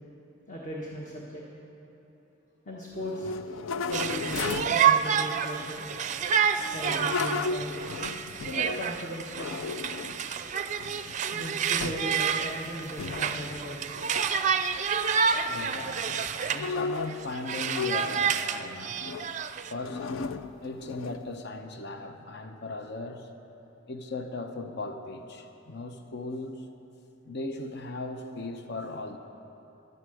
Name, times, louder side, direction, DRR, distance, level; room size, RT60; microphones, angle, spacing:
voice 1, 0.5-1.4 2.6-3.3 3.9-5.8 6.6-8.0 8.4-9.6 11.3-14.1, equal, 40° left, -3 dB, 1.3 m, -37 dB
sound 1, 2.9-4.9 6.8-8.9 9.3-10.3 10.8-11.4 11.8-12.1 12.4-13.6 14.1-14.3 16.4-18.4 19.0-19.3 19.8-21.4, left 4 dB, 85° left, 0.4 m, -35 dB
Conversation, 3.9-16.7 17.1-19.7, right 7 dB, 40° right, 0.4 m, -29 dB
voice 2, 15.5-19.0 19.7-23.3 23.9-26.7 27.2-29.2, left 2 dB, 60° left, 6 dB, 0.8 m, -38 dB
12.0 x 9.5 x 7.8 m, 3.0 s
head